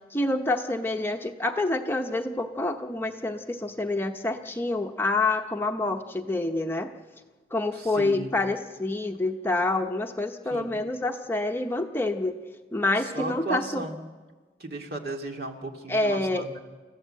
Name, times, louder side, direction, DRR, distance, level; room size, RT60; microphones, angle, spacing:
voice 1, 0.1-6.9 7.5-12.4 12.7-13.8 15.9-16.4, left 2 dB, 15° left, 4 dB, 0.8 m, -27 dB
voice 2, 7.7-8.3 10.5-10.8 13.0-14.0 14.6-16.6, right 2 dB, 60° right, 3 dB, 2.2 m, -35 dB
29.5 x 15.0 x 7.7 m, 1.4 s
head